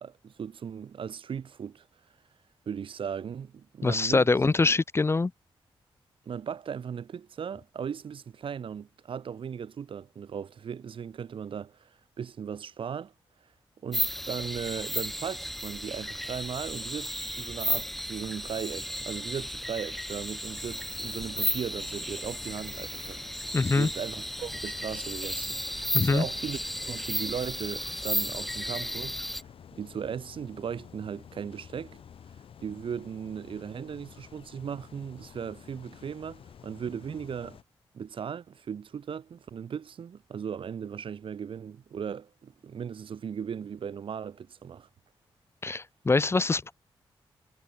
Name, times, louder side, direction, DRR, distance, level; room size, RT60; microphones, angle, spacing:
voice 1, 0.0-1.9 2.6-4.3 4.6-4.8 6.2-11.9 12.2-13.1 13.8-26.6 26.8-29.2 29.7-32.0 32.6-37.6 37.9-44.9, right 7 dB, 65° right, 1.7 m, -37 dB
voice 2, 3.8-5.3 23.5-23.9 25.9-26.2 45.6-46.7, left 3 dB, 25° left, 0.8 m, -24 dB
sound 1, 13.9-29.4, equal, ahead, 1.0 m, -34 dB
sound 2, 20.5-37.6, left 8 dB, 75° left, 3.9 m, -51 dB
cardioid pair, 95°, 9 cm